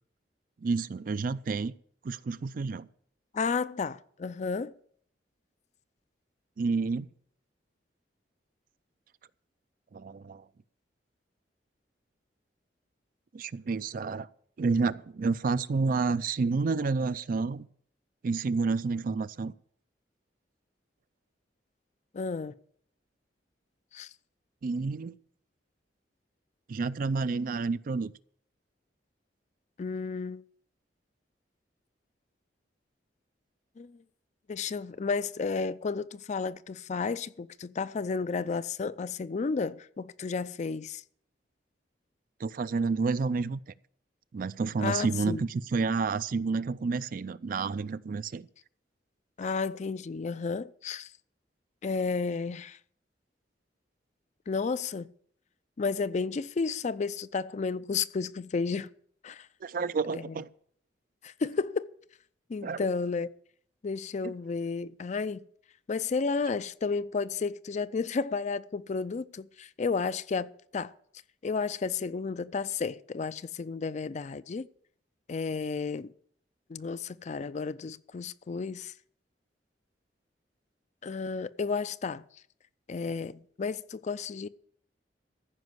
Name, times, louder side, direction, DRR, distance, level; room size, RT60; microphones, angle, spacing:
voice 1, 0.6-1.7 2.0-2.9 6.6-7.1 9.9-10.4 13.3-14.3 14.6-17.7 18.2-19.5 24.6-25.1 26.7-28.1 42.4-43.6 44.3-48.5 59.6-60.5 62.6-62.9 64.2-64.3, right 4 dB, 50° right, 0.4 m, -29 dB
voice 2, 3.3-4.7 22.1-22.5 23.9-24.1 29.8-30.4 33.8-33.9 34.5-41.0 44.8-45.4 49.4-51.1 51.8-52.8 54.5-55.1 55.8-58.9 59.2-59.5 60.1-60.3 61.2-61.9 62.5-63.3 63.8-65.4 65.9-70.9 71.4-74.7 75.3-76.1 76.7-78.9 81.0-82.2 82.9-84.5, left 4 dB, 40° left, 0.4 m, -32 dB
14.5 x 5.4 x 7.9 m
head